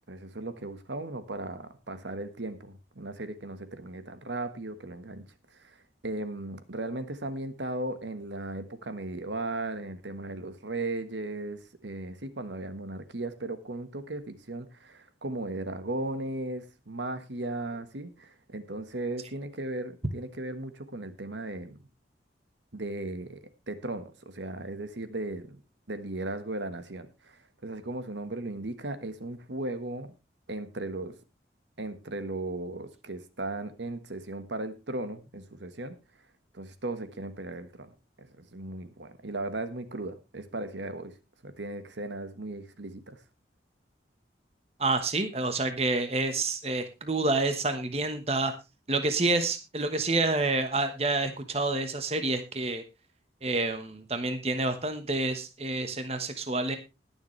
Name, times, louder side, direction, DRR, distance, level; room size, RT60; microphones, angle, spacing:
voice 1, 0.1-5.2 5.5-21.8 22.7-25.6 25.9-30.1 30.5-31.2 31.8-36.0 36.5-37.9 38.2-41.1 41.4-43.2, right 2 dB, 80° right, 10 dB, 1.4 m, -36 dB
voice 2, 44.8-48.5 48.9-52.8 53.4-56.8, right 2 dB, 35° right, 8 dB, 1.2 m, -28 dB
21.0 x 7.2 x 3.2 m, 0.26 s
head